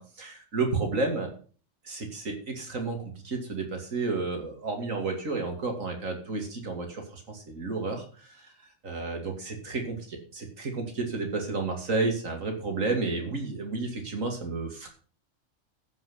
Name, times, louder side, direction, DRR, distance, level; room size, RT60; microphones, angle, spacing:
voice 1, 0.0-1.3 1.8-3.0 3.2-8.5 8.8-14.9, right 3 dB, 80° right, 3 dB, 2.9 m, -31 dB
14.5 x 6.0 x 6.0 m, 0.40 s
omnidirectional pair, 1.3 m